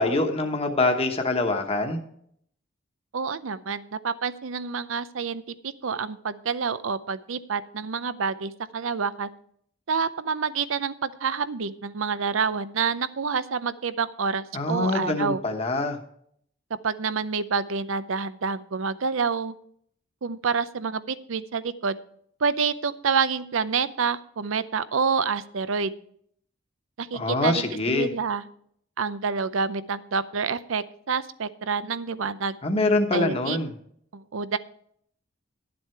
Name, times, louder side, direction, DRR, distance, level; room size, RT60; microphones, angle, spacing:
voice 1, 0.0-2.0 14.5-16.0 27.1-28.1 32.6-33.7, left 2 dB, 30° left, 3 dB, 1.1 m, -24 dB
voice 2, 3.1-9.3 9.9-15.4 16.8-19.5 20.2-22.0 22.4-25.9 27.0-28.5 29.0-32.6 33.1-33.6 34.1-34.6, right 5 dB, 80° right, 15 dB, 0.6 m, -28 dB
11.5 x 7.7 x 4.5 m, 0.65 s
head